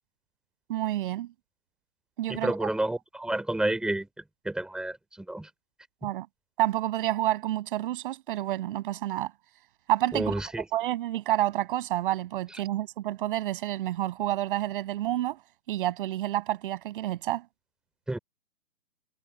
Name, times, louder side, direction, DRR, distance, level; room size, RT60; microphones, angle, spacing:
voice 1, 0.7-1.3 2.2-2.7 6.0-6.3 6.6-9.3 9.9-10.3 10.7-15.4 15.7-17.4, right 14 dB, 35° right, 6.7 m, -29 dB
voice 2, 2.3-4.1 4.4-5.5 6.0-6.1 10.1-10.6 18.1-18.2, right 1 dB, ahead, 3.1 m, -30 dB
hypercardioid pair, 150°, 45 cm